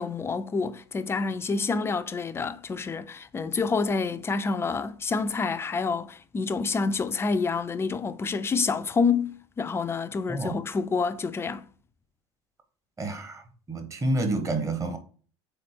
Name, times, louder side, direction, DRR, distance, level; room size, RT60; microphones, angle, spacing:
voice 1, 0.0-11.7, left 4 dB, 15° left, 0.4 m, -28 dB
voice 2, 13.0-13.4 13.7-15.0, right 2 dB, 20° right, 1.0 m, -28 dB
3.8 x 3.3 x 4.2 m
figure-of-eight pair, 75°, 15 cm